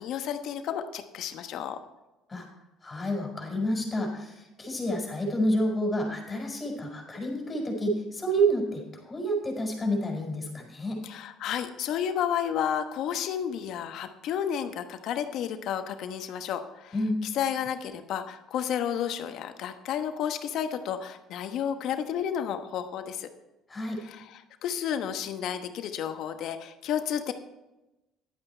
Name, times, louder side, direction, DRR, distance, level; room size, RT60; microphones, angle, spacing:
voice 1, 0.0-1.8 11.0-17.0 17.3-23.3 24.0-27.3, left 9 dB, 65° left, 8 dB, 1.1 m, -31 dB
voice 2, 2.8-11.0 16.9-17.2 23.7-24.0, right 1 dB, 25° left, 1 dB, 4.8 m, -29 dB
11.5 x 8.9 x 4.4 m, 0.99 s
supercardioid pair, 75°, 0 cm